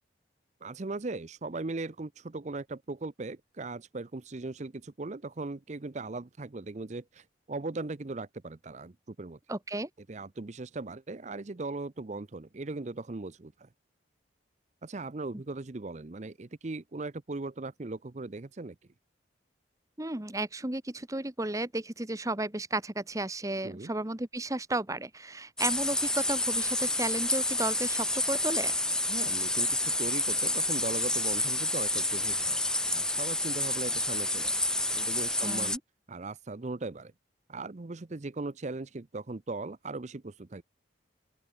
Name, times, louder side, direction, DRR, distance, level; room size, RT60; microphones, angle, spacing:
voice 1, 0.6-9.4 10.1-13.7 14.8-18.8 23.6-23.9 29.1-32.6 32.9-34.6 34.9-35.7 36.1-37.1 37.5-40.6, right 3 dB, 40° right, 0.6 m, -38 dB
voice 2, 9.5-9.9 20.0-28.7 35.4-35.8, right 2 dB, 15° right, 1.2 m, -33 dB
sound 1, 25.6-35.8, left 2 dB, 5° left, 0.4 m, -29 dB
open air
head